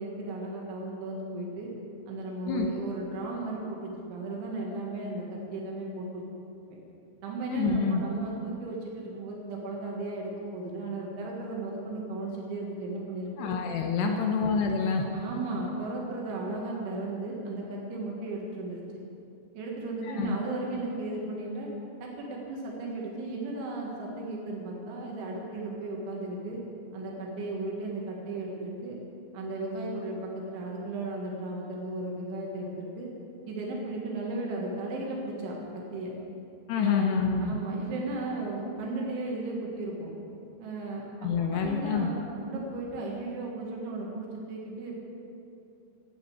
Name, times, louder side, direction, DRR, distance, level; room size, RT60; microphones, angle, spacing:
voice 1, 0.0-1.7 2.1-6.2 7.2-13.5 14.0-14.3 15.1-18.8 19.5-21.7 22.0-26.6 26.9-29.0 29.3-33.1 33.5-36.1 36.8-37.1 37.4-40.1 40.6-44.9, right 2 dB, 80° right, -2 dB, 4.1 m, -35 dB
voice 2, 7.5-8.0 13.4-15.0 20.0-20.4 36.7-37.6 41.2-42.1, left 5 dB, 80° left, 3 dB, 2.6 m, -27 dB
12.5 x 9.6 x 7.9 m, 2.7 s
omnidirectional pair, 5.3 m